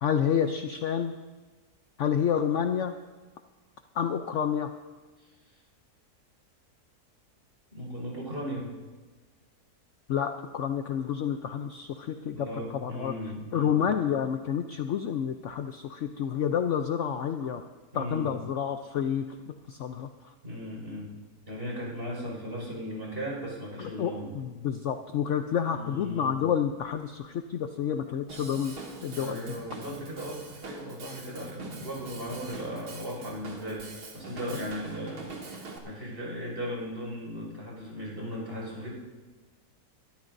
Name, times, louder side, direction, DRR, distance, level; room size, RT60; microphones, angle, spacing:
voice 1, 0.0-1.1 2.0-2.9 3.9-4.8 10.1-12.4 12.7-13.1 13.5-17.6 17.9-20.1 23.8-29.5, left 8 dB, 65° left, 7 dB, 0.8 m, -29 dB
voice 2, 7.7-8.7 12.3-13.7 17.9-18.3 20.4-21.1 21.5-24.3 25.7-26.4 28.5-28.7 29.1-33.9 34.1-38.9, equal, 40° right, -3 dB, 5.3 m, -37 dB
Drum kit / Drum, 28.3-35.8, right 3 dB, 80° right, 2.2 m, -43 dB
23.5 x 13.0 x 2.6 m, 1.3 s
omnidirectional pair, 1.7 m